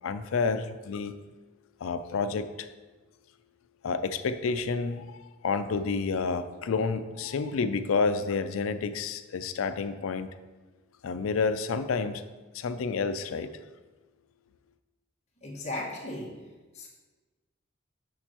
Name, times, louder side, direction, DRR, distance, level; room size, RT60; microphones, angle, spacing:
voice 1, 0.0-1.2 1.8-2.7 3.8-10.3 11.0-12.2 12.5-13.5, left 4 dB, 75° left, 11 dB, 0.4 m, -29 dB
voice 2, 15.4-16.3 16.7-16.9, left 1 dB, 35° left, -5 dB, 1.7 m, -36 dB
6.6 x 6.4 x 3.0 m, 1.2 s
head